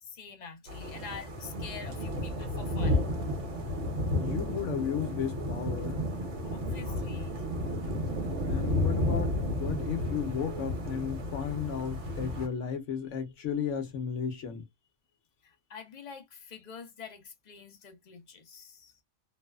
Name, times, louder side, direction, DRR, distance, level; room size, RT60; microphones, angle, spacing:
voice 1, 0.0-3.1 6.4-7.5 7.8-7.9 15.4-19.0, left 6 dB, 45° left, 0.7 m, -46 dB
sound 1, 0.7-12.5, left 1 dB, 75° right, 1.3 m, -32 dB
voice 2, 4.2-6.0 8.4-9.3 9.6-14.6, left 7 dB, 80° left, 1.1 m, -34 dB
3.1 x 2.0 x 2.2 m
omnidirectional pair, 1.3 m